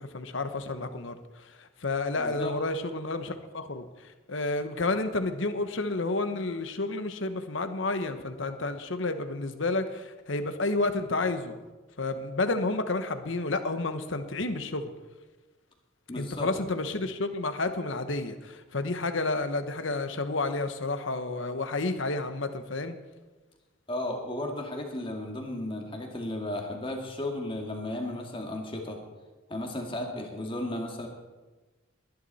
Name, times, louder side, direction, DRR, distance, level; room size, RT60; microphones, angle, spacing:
voice 1, 0.0-11.6 12.0-14.9 16.2-23.0, left 2 dB, 65° left, 9 dB, 1.1 m, -30 dB
voice 2, 2.2-2.5 16.1-16.5 23.9-29.0 29.5-31.1, left 1 dB, 25° left, 1 dB, 2.1 m, -34 dB
21.0 x 11.0 x 4.2 m, 1.2 s
head